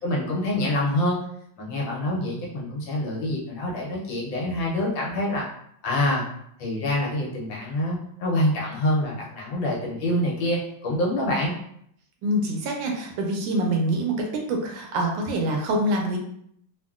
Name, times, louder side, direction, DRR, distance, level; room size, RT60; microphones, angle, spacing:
voice 1, 0.0-1.2 1.6-5.5 5.8-6.2 6.6-11.5, left 1 dB, 70° left, -3 dB, 1.4 m, -26 dB
voice 2, 12.2-14.1 14.5-16.2, right 1 dB, 75° right, 1 dB, 1.3 m, -25 dB
3.5 x 2.2 x 2.3 m, 0.70 s
omnidirectional pair, 2.2 m